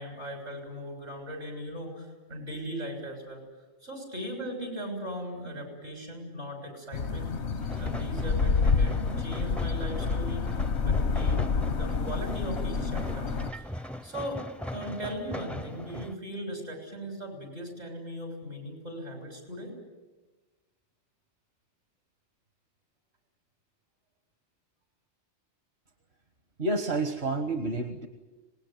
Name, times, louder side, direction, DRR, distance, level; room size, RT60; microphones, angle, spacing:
voice 1, 0.0-3.4 3.8-7.3 7.8-13.3 13.5-14.4 14.7-19.8, equal, 90° right, 3 dB, 7.3 m, -38 dB
sound 1, 6.9-13.5, left 4 dB, 80° left, 1.3 m, -28 dB
sound 2, 7.6-16.1, equal, ahead, 0.5 m, -40 dB
voice 2, 26.6-28.1, right 2 dB, 65° right, 6 dB, 1.7 m, -29 dB
26.0 x 20.0 x 9.4 m, 1.2 s
omnidirectional pair, 1.1 m